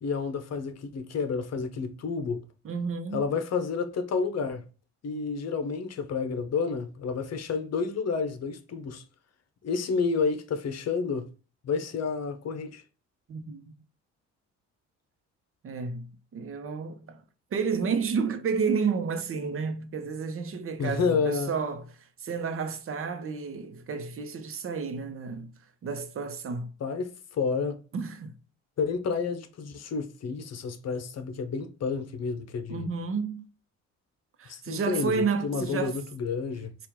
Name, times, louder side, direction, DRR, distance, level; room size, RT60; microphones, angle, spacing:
voice 1, 0.0-2.4 3.1-4.6 5.0-9.0 9.6-11.3 11.6-12.8 20.8-21.5 26.8-27.8 28.8-32.9 34.5-36.7, left 5 dB, 55° left, 0.9 m, -30 dB
voice 2, 2.6-3.2 13.3-13.7 15.6-17.2 17.5-25.5 25.8-26.7 27.9-28.3 32.7-33.4 34.4-35.9, right 5 dB, 45° right, 0.8 m, -31 dB
4.5 x 2.5 x 3.6 m
cardioid pair, 90°, 30 cm